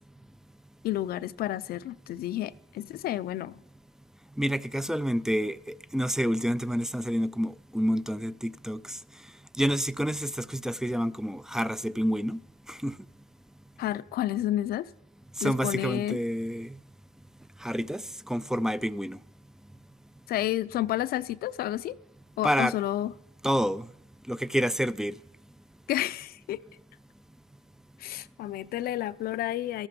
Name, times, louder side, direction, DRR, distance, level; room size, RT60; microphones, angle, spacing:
voice 1, 0.8-3.6 13.8-14.9 15.4-16.2 20.3-21.9 22.4-23.1 25.9-26.6 28.0-29.9, left 13 dB, 65° left, 0.6 m, -30 dB
voice 2, 4.4-9.0 9.6-12.4 12.7-12.9 15.4-16.7 17.6-19.2 22.4-22.7 23.4-23.9 24.3-25.1, equal, 5° right, 0.4 m, -28 dB
13.5 x 12.5 x 5.2 m
cardioid pair, 110°, 17 cm